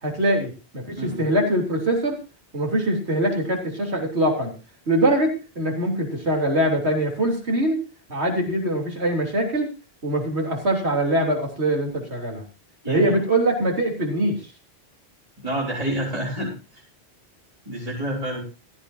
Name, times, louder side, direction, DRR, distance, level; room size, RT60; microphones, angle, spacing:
voice 1, 0.0-2.2 2.5-4.5 4.9-7.8 8.1-9.7 10.0-12.4 12.9-14.4, right 1 dB, 80° right, 1 dB, 3.8 m, -23 dB
voice 2, 12.8-13.2 15.4-16.8 17.6-18.4, right 1 dB, 35° right, -4 dB, 4.3 m, -28 dB
16.5 x 13.5 x 2.8 m, 0.31 s
omnidirectional pair, 1.1 m